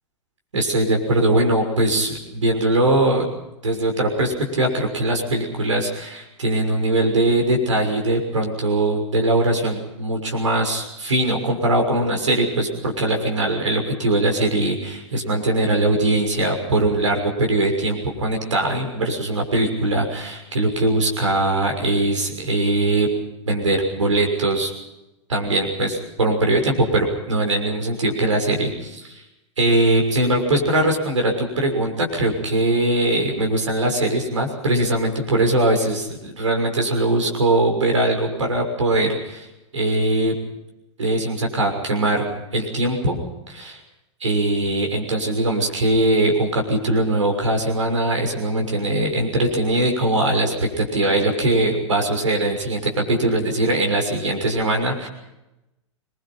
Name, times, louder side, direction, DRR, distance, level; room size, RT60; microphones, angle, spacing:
voice 1, 0.5-3.3 3.6-23.1 23.5-24.7 25.3-29.1 29.6-39.5 39.7-40.4 41.0-42.2 42.5-43.2 43.5-43.8 44.2-55.1, right 2 dB, 80° right, 2 dB, 6.3 m, -21 dB
27.0 x 22.5 x 5.7 m, 0.93 s
figure-of-eight pair, 95°, 16 cm